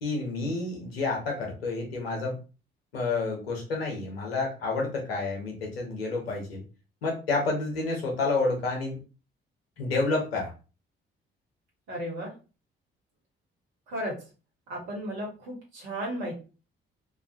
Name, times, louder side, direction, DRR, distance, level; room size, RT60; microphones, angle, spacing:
voice 1, 0.0-2.4 2.9-6.6 7.0-9.0 9.8-10.5, left 3 dB, 85° left, 0 dB, 0.7 m, -29 dB
voice 2, 11.9-12.3 13.9-14.2 14.7-16.4, equal, 70° right, -4 dB, 1.0 m, -34 dB
2.4 x 2.2 x 2.5 m, 0.33 s
figure-of-eight pair, 40°, 29 cm